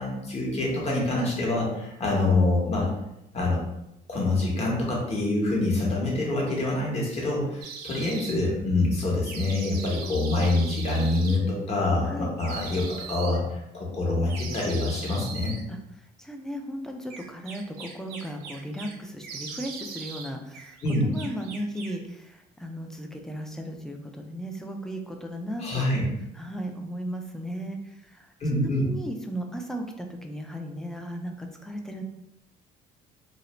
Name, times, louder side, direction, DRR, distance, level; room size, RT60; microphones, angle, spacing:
voice 1, 0.0-2.9 3.3-3.6 4.1-15.5 20.8-21.2 25.6-26.0 28.4-28.9, left 2 dB, 40° left, -3 dB, 1.0 m, -26 dB
sound 1, 7.6-8.4 9.2-11.4 12.4-13.4 14.3-15.6 17.1-18.9 19.2-20.3 20.5-22.0, right 5 dB, 75° right, 0.5 m, -40 dB
voice 2, 16.2-20.8 21.0-25.9 26.3-32.0, equal, 5° left, 3 dB, 0.3 m, -36 dB
2.5 x 2.0 x 3.0 m, 0.85 s
cardioid pair, 110°, 17 cm